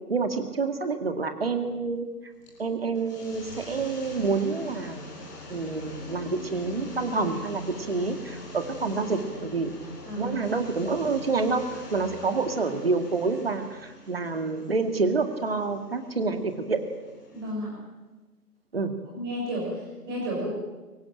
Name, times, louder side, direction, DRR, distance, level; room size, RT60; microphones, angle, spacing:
voice 1, 0.1-2.1 2.6-5.0 5.5-9.8 10.2-16.8 18.7-18.9, right 4 dB, 40° right, 7 dB, 2.2 m, -28 dB
sound 1, 2.3-17.5, left 2 dB, 10° left, 3.2 m, -44 dB
voice 2, 10.1-10.4 17.3-17.8 19.1-20.5, equal, 15° right, -2 dB, 5.7 m, -32 dB
23.5 x 18.0 x 9.0 m, 1.2 s
figure-of-eight pair, 155°, 47 cm